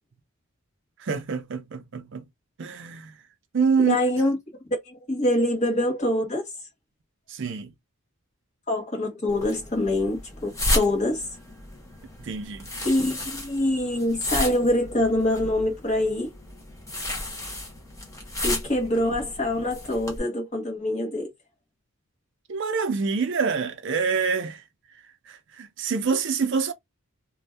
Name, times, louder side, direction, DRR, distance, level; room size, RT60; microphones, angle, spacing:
voice 1, 1.0-2.2 2.6-3.1 3.5-4.0 7.3-7.7 12.2-12.7 22.5-24.6 25.3-26.7, right 5 dB, 55° right, 0.5 m, -26 dB
voice 2, 3.8-4.4 4.9-6.4 8.7-11.3 12.8-16.3 18.4-21.3, left 1 dB, 30° left, 1.1 m, -25 dB
sound 1, 9.3-20.2, left 1 dB, 15° left, 0.7 m, -33 dB
2.6 x 2.2 x 3.3 m
head